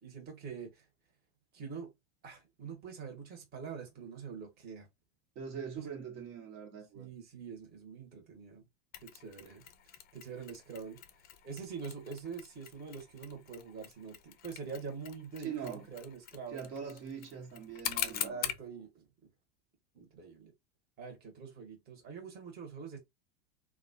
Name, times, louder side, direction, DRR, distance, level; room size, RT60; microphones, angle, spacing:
voice 1, 0.0-0.9 1.5-1.9 2.2-4.9 5.8-5.9 6.9-8.6 9.0-11.0 11.4-16.6 18.0-19.0 19.9-20.5 21.0-23.0, right 5 dB, 30° right, 1.2 m, -45 dB
voice 2, 5.3-7.1 15.4-15.9 16.5-18.4, right 7 dB, 60° right, 1.3 m, -42 dB
Mechanisms, 8.9-18.7, left 11 dB, 30° left, 0.4 m, -44 dB
2.9 x 2.4 x 2.6 m
supercardioid pair, 115°, 33 cm